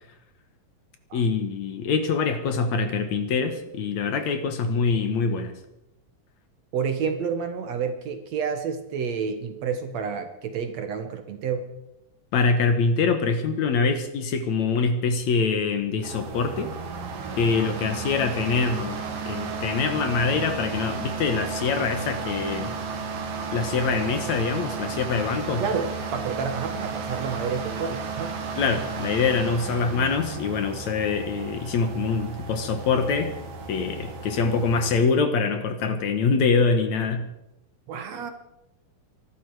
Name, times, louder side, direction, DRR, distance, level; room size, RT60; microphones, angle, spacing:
voice 1, 1.1-5.5 12.3-16.7 17.4-22.7 23.5-25.6 28.6-33.3 33.7-37.3, left 4 dB, 65° left, 7 dB, 2.4 m, -24 dB
voice 2, 6.7-11.7 17.5-17.7 25.6-28.4 37.9-38.3, right 6 dB, 60° right, 7 dB, 2.3 m, -29 dB
sound 1, 16.0-35.0, right 5 dB, 80° right, 3.7 m, -33 dB
23.5 x 12.5 x 4.9 m, 0.89 s
omnidirectional pair, 3.8 m